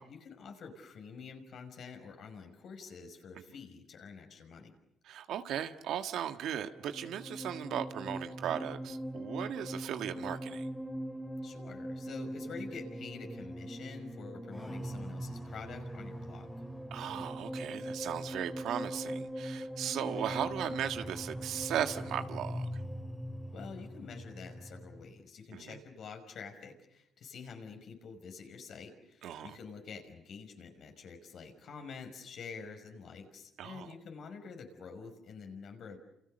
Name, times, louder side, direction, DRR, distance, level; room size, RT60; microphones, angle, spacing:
voice 1, 0.0-4.7 11.4-16.5 23.5-36.0, left 5 dB, 65° left, 5 dB, 5.6 m, -47 dB
voice 2, 5.0-10.7 16.9-22.8 25.5-25.8 29.2-29.6 33.6-33.9, right 10 dB, 80° right, 8 dB, 1.6 m, -37 dB
sound 1, 6.7-25.1, equal, 5° left, 3.3 m, -41 dB
29.5 x 28.5 x 6.7 m, 0.81 s
cardioid pair, 90°, 0 cm